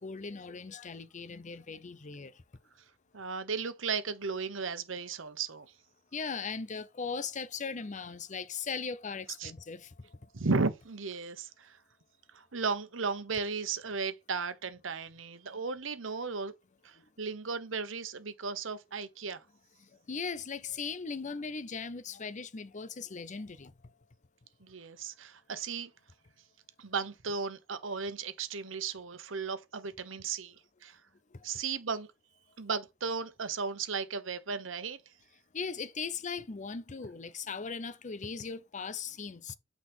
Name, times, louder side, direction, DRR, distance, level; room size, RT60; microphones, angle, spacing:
voice 1, 0.0-2.4 6.1-10.3 17.0-17.1 19.8-23.7 31.3-31.4 35.5-39.6, left 5 dB, 40° left, 0.6 m, -39 dB
voice 2, 3.1-5.7 9.4-9.5 10.3-11.8 12.3-16.5 16.8-19.4 24.6-25.9 26.8-31.0 31.4-32.1 32.6-35.0, right 4 dB, 75° right, 1.0 m, -35 dB
8.8 x 4.1 x 3.6 m
head